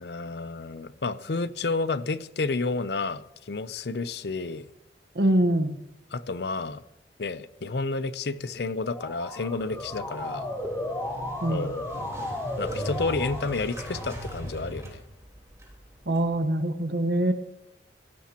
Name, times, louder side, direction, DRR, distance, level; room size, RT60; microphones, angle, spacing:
voice 1, 0.0-4.6 6.1-6.8 7.2-10.5 11.5-11.8 12.6-15.0, left 3 dB, 65° left, 15 dB, 0.6 m, -30 dB
voice 2, 5.1-5.8 11.4-11.7 16.1-17.3, right 1 dB, 65° right, 9 dB, 1.2 m, -24 dB
Motor vehicle (road) / Siren, 8.7-14.6, left 1 dB, 10° left, 2.5 m, -35 dB
Motorcycle, 9.5-16.3, equal, 15° right, 3.9 m, -39 dB
17.0 x 16.0 x 2.9 m, 0.85 s
head